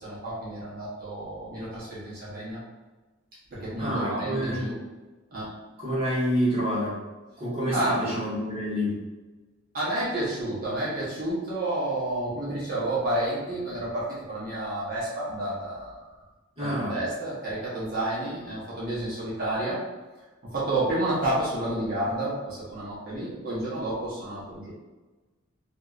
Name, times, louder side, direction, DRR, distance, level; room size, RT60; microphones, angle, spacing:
voice 1, 0.0-2.6 3.5-4.8 5.3-5.5 7.7-7.9 9.7-16.0 16.6-19.8 20.4-24.7, right 1 dB, 45° right, -9 dB, 1.0 m, -30 dB
voice 2, 3.8-4.7 5.8-7.0 7.4-8.9 16.6-17.0, equal, 30° right, -10 dB, 1.5 m, -27 dB
3.0 x 2.7 x 2.4 m, 1.2 s
head